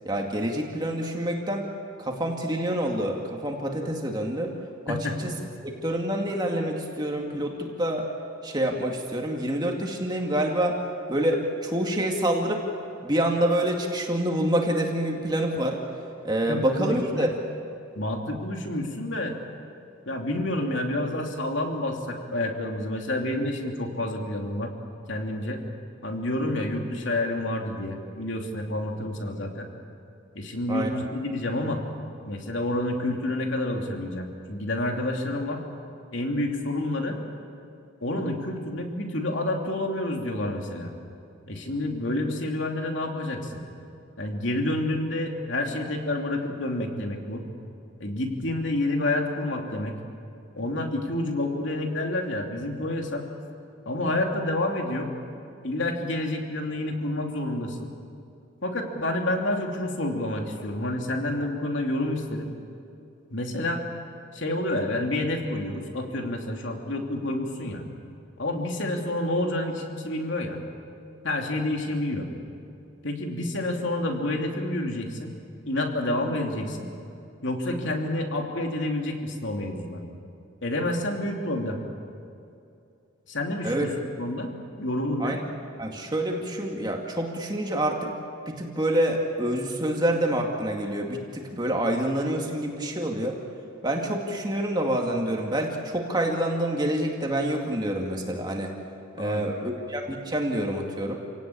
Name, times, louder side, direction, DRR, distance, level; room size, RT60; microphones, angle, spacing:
voice 1, 0.0-1.7 2.0-4.5 4.9-5.3 5.6-8.1 8.4-10.8 11.1-12.7 13.0-15.8 16.2-17.3 30.7-30.9 83.6-83.9 85.2-85.4 85.8-88.1 88.5-93.4 93.8-98.7 99.1-101.2, right 1 dB, 20° right, 1 dB, 2.2 m, -27 dB
voice 2, 4.9-5.3 16.5-17.3 18.0-19.4 20.1-24.7 25.1-25.6 26.0-29.7 30.3-31.8 32.2-35.6 36.1-37.2 38.0-40.9 41.5-43.5 44.2-47.4 48.0-49.9 50.6-53.3 53.8-55.1 55.6-57.9 58.6-62.5 63.3-63.9 64.3-67.9 68.4-70.6 71.2-72.3 73.0-75.3 75.7-76.9 77.4-80.0 80.6-81.8 83.3-83.9 84.2-84.5 84.8-85.4 99.2-99.7, left 1 dB, 65° left, 2 dB, 3.0 m, -29 dB
28.5 x 18.0 x 8.7 m, 2.6 s
head